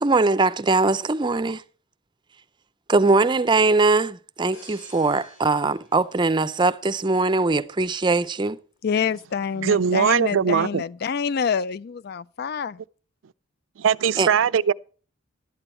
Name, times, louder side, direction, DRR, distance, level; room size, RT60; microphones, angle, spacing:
voice 1, 0.0-1.6 2.9-8.6 14.2-14.3, right 3 dB, 25° right, 0.5 m, -21 dB
sound 1, 4.5-7.2 7.7-7.9, left 1 dB, 75° left, 5.3 m, -51 dB
voice 2, 8.8-12.8, left 6 dB, 55° left, 0.4 m, -27 dB
voice 3, 9.6-10.8 13.8-14.7, right 7 dB, 80° right, 0.4 m, -20 dB
12.0 x 8.9 x 4.3 m
head